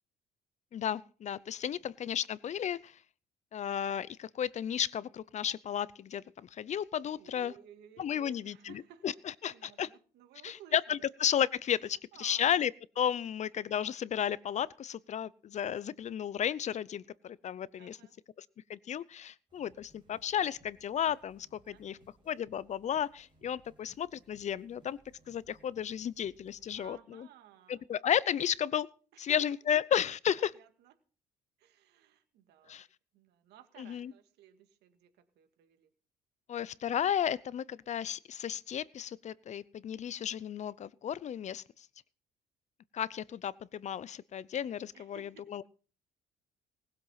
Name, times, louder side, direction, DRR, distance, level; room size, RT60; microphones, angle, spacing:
voice 1, 0.7-3.0 3.5-7.5 8.0-8.5 9.0-9.1 9.4-9.9 10.4-12.7 13.0-18.0 18.7-22.0 22.3-25.0 25.3-27.3 27.7-28.9 29.2-30.5 32.7-32.9 33.8-34.1 36.5-41.9 42.9-45.7, left 9 dB, 45° left, 0.6 m, -33 dB
voice 2, 7.1-11.1 12.1-12.5 17.8-18.1 21.7-22.0 26.8-27.9 29.1-29.4 30.4-30.9 31.6-32.8 33.1-35.9 44.9-45.5, right 10 dB, 80° right, 2.1 m, -57 dB
sound 1, 19.5-26.9, equal, 30° right, 6.4 m, -65 dB
19.0 x 7.8 x 5.7 m
cardioid pair, 110°, 17 cm